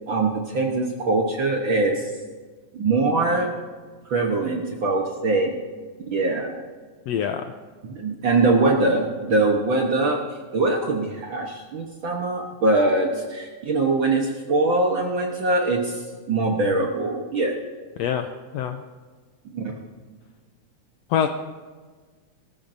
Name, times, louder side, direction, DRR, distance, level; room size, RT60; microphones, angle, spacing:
voice 1, 0.0-2.1 2.7-3.5 4.1-5.5 6.1-6.5 7.9-10.2 10.5-17.5 19.5-19.7, right 2 dB, 60° right, 1 dB, 1.4 m, -22 dB
voice 2, 7.1-7.4 18.0-18.3 18.5-18.8 21.1-21.3, left 9 dB, 90° left, 6 dB, 1.5 m, -24 dB
19.5 x 13.5 x 2.7 m, 1.5 s
omnidirectional pair, 3.5 m